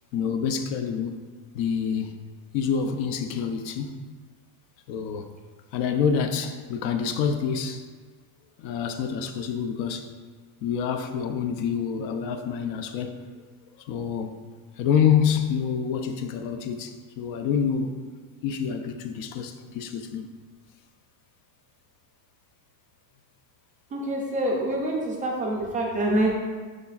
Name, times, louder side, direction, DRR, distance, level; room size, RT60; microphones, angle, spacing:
voice 1, 0.1-1.3 1.5-2.2 2.5-4.0 4.9-5.3 5.7-7.9 8.6-10.1 10.6-13.3 13.8-14.4 14.8-17.9 18.4-20.3, left 7 dB, 50° left, 7 dB, 0.5 m, -27 dB
voice 2, 23.9-26.3, right 1 dB, 20° right, -2 dB, 0.4 m, -26 dB
11.5 x 4.1 x 2.4 m, 1.5 s
cardioid pair, 165°, 44 cm